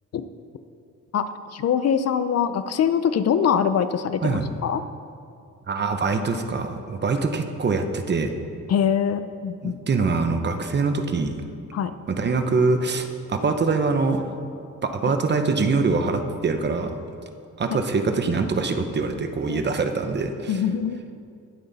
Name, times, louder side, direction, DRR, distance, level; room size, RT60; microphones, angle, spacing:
voice 1, 1.1-4.8 8.7-9.8 11.7-11.9 19.5-19.6 20.5-21.1, left 8 dB, 55° left, 12 dB, 0.5 m, -23 dB
voice 2, 5.7-8.3 9.6-11.4 12.1-14.2 14.8-16.9 17.6-20.6, right 4 dB, 35° right, 7 dB, 0.9 m, -24 dB
20.5 x 8.0 x 4.1 m, 2.4 s
cardioid pair, 140°, 31 cm